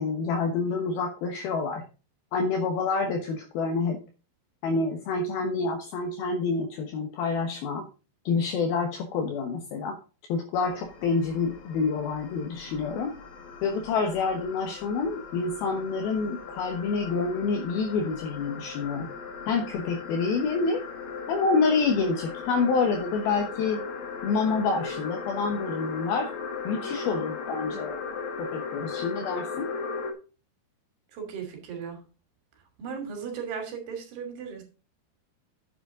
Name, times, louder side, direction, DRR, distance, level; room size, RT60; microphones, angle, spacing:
voice 1, 0.0-1.8 2.3-4.0 4.6-7.8 8.3-10.0 10.3-13.1 13.6-19.1 19.5-20.8 21.3-23.8 24.2-26.3 26.6-28.0 28.4-29.7, left 4 dB, 70° left, 4 dB, 2.9 m, -27 dB
sound 1, 10.5-30.1, left 5 dB, 55° left, 2.5 m, -38 dB
voice 2, 31.1-32.0 32.8-34.6, right 6 dB, 75° right, 4 dB, 4.6 m, -36 dB
10.5 x 7.9 x 3.8 m, 0.32 s
omnidirectional pair, 4.8 m